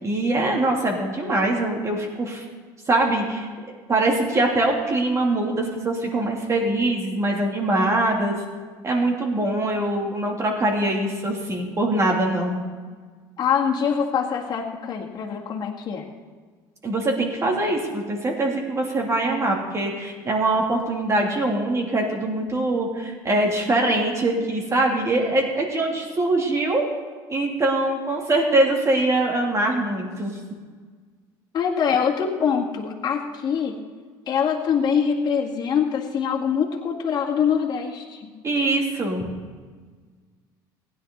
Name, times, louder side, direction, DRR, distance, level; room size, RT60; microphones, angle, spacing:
voice 1, 0.0-2.4 2.9-3.5 3.9-8.4 8.8-12.6 16.8-26.9 27.3-30.4 38.4-39.3, right 2 dB, 30° right, 0 dB, 3.0 m, -23 dB
voice 2, 13.4-16.0 31.5-33.8 34.3-38.3, left 7 dB, 45° left, -1 dB, 2.0 m, -24 dB
16.0 x 10.5 x 4.0 m, 1.5 s
supercardioid pair, 90°, 10 cm